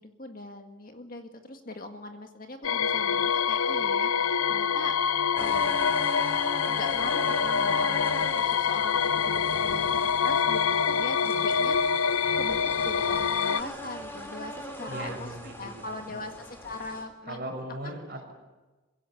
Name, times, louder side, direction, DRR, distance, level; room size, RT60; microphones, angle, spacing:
voice 1, 0.0-5.0 5.4-6.0 6.6-11.8 12.4-17.4 17.8-17.9, left 2 dB, 45° left, 5 dB, 1.9 m, -40 dB
sound 1, 2.6-13.6, left 6 dB, 90° left, 0.6 m, -26 dB
sound 2, 5.4-17.0, equal, 10° left, 3.1 m, -40 dB
voice 2, 14.9-16.2 17.3-18.3, right 1 dB, 50° right, 1 dB, 6.3 m, -39 dB
21.5 x 17.0 x 8.5 m, 1.2 s
head